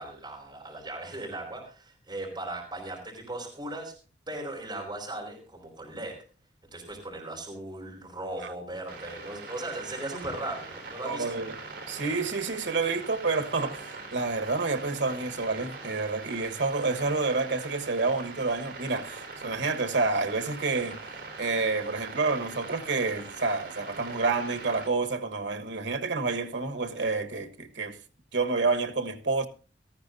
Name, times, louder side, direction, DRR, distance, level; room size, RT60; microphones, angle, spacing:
voice 1, 0.0-3.9 4.3-6.2 6.7-11.3, right 2 dB, 25° right, 4.5 m, -38 dB
sound 1, 8.9-24.9, right 3 dB, 65° right, 4.0 m, -42 dB
voice 2, 11.0-11.5 11.9-21.0 21.4-28.0 28.3-29.5, right 3 dB, 90° right, 1.3 m, -29 dB
18.0 x 14.0 x 2.6 m
head